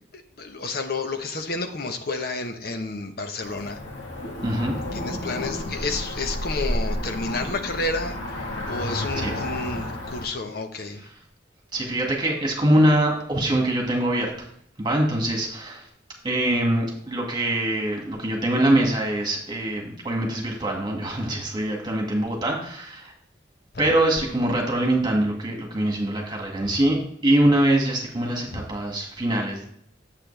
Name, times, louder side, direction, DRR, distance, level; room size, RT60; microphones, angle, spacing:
voice 1, 0.1-3.8 4.9-11.1 26.6-26.7, left 3 dB, 55° left, 6 dB, 0.9 m, -30 dB
Cricket / Motor vehicle (road), 3.4-10.3, left 1 dB, 80° left, 1.7 m, -31 dB
voice 2, 4.4-4.7 9.2-9.3 11.7-14.5 14.8-15.9 16.2-23.1 23.8-29.7, right 1 dB, 25° right, 0 dB, 1.9 m, -23 dB
8.4 x 7.5 x 3.3 m, 0.68 s
head